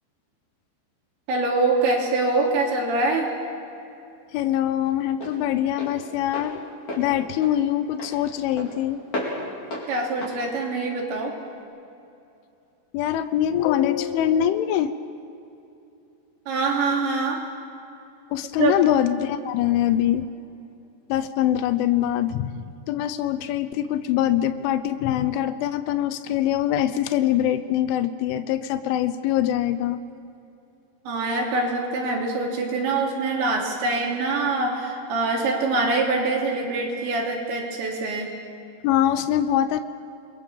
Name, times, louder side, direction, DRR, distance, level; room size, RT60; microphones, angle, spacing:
voice 1, 1.3-3.3 9.9-11.3 16.5-17.4 18.6-18.7 31.1-38.3, right 3 dB, 70° right, -1 dB, 5.6 m, -24 dB
Walk footsteps, 2.9-11.6, left 1 dB, 35° left, 5.8 m, -36 dB
voice 2, 4.3-6.6 7.0-9.0 12.9-14.9 18.3-20.3 21.1-30.0 38.8-39.8, left 11 dB, 90° left, 12 dB, 3.3 m, -23 dB
28.5 x 22.0 x 7.1 m, 2.7 s
omnidirectional pair, 5.4 m